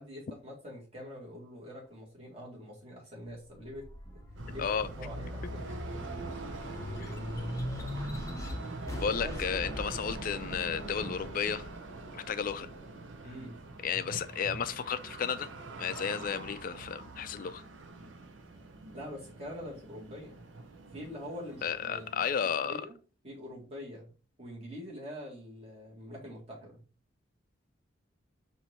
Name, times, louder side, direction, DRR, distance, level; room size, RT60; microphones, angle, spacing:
voice 1, 0.0-4.2 4.5-5.6 9.2-9.3 13.2-13.6 18.9-20.4 20.9-23.0 23.2-24.1 24.4-26.9, equal, 30° right, 1.9 m, -45 dB
sound 1, 3.4-14.1 14.6-15.7, left 1 dB, 15° left, 0.6 m, -41 dB
sound 2, 4.4-22.4, right 3 dB, 75° right, 0.6 m, -44 dB
voice 2, 9.0-11.7 12.1-12.7 13.8-15.5 15.8-17.6 21.6-22.8, left 7 dB, 45° left, 0.3 m, -33 dB
4.4 x 2.7 x 4.3 m
head